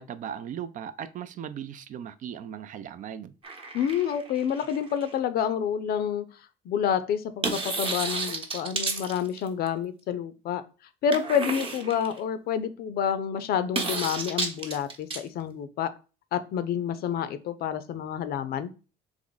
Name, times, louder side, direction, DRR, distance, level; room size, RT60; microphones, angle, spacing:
voice 1, 0.0-3.3, right 9 dB, 50° right, 0.4 m, -38 dB
sound 1, 3.4-5.1 7.4-9.7 11.1-12.2 13.7-15.2, right 3 dB, 30° right, 0.9 m, -32 dB
voice 2, 3.7-6.3 6.7-10.6 11.0-15.9 16.3-18.7, left 8 dB, 65° left, 0.5 m, -28 dB
3.6 x 3.0 x 3.9 m
cardioid pair, 110°, 17 cm